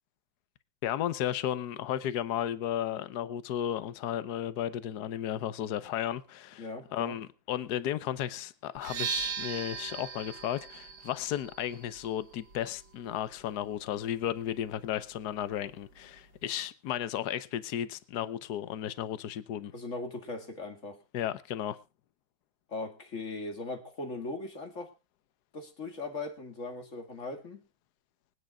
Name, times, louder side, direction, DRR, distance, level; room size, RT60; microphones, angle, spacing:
voice 1, 0.8-6.6 6.9-19.7 21.1-21.8, left 11 dB, 60° left, 1.3 m, -34 dB
voice 2, 6.6-7.2 19.7-21.0 22.7-24.9 25.5-27.6, left 3 dB, 40° left, 2.3 m, -39 dB
sound 1, 8.7-16.5, right 7 dB, 85° right, 2.5 m, -41 dB
25.0 x 9.7 x 2.4 m
omnidirectional pair, 2.2 m